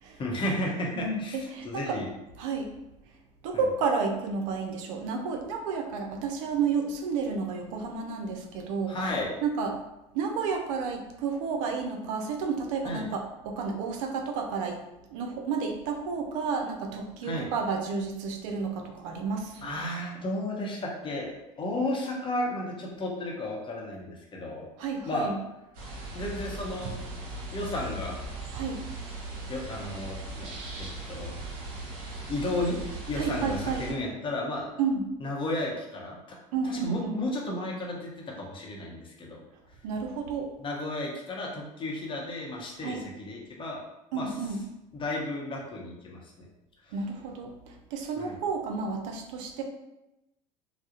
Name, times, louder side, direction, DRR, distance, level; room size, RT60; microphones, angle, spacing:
voice 1, 0.2-2.1 3.5-3.6 8.9-9.3 12.8-13.1 17.2-17.5 19.6-24.7 25.1-25.3 26.1-27.0 27.5-28.2 29.4-30.5 30.8-31.4 32.3-32.8 33.1-34.7 35.2-36.4 36.6-39.4 40.6-43.8 44.1-44.3 44.9-46.2 48.2-48.4, left 1 dB, 30° left, -1 dB, 0.7 m, -33 dB
voice 2, 1.0-2.0 2.4-2.7 3.4-9.0 9.4-9.8 10.1-14.8 15.1-19.8 24.8-25.4 28.5-28.8 33.2-33.9 34.8-35.1 36.5-37.2 39.8-40.5 42.8-43.0 44.1-44.6 46.9-49.6, right 5 dB, 80° right, 3 dB, 0.4 m, -31 dB
sound 1, 25.7-33.9, right 2 dB, 60° right, 0.9 m, -38 dB
2.3 x 2.0 x 2.7 m, 0.92 s
supercardioid pair, 90°, 17 cm